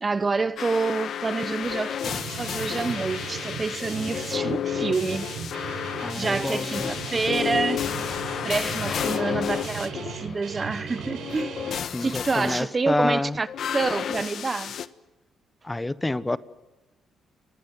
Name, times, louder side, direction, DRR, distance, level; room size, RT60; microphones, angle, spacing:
voice 1, 0.0-5.3 6.2-7.8 8.4-11.6 12.0-13.5 13.7-14.8, right 4 dB, 30° right, 0.9 m, -27 dB
sound 1, 0.6-10.2 11.1-12.6 13.5-14.9, left 9 dB, 65° left, 1.2 m, -31 dB
Guitar, 2.0-11.8, right 6 dB, 80° right, 4.9 m, -37 dB
voice 2, 6.0-6.9 11.9-13.4 15.6-16.4, left 2 dB, 15° left, 1.1 m, -27 dB
sound 2, 8.9-13.5, left 3 dB, 40° left, 7.8 m, -45 dB
29.0 x 24.0 x 7.7 m
cardioid pair, 90°, 0 cm